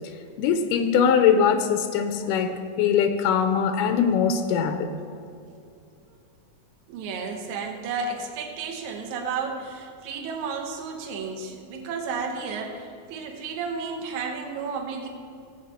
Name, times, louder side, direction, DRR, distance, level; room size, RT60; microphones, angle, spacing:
voice 1, 0.4-4.9, left 7 dB, 90° left, 8 dB, 2.3 m, -22 dB
voice 2, 6.9-15.1, right 5 dB, 70° right, 2 dB, 2.4 m, -32 dB
16.0 x 8.1 x 4.3 m, 2.4 s
omnidirectional pair, 3.7 m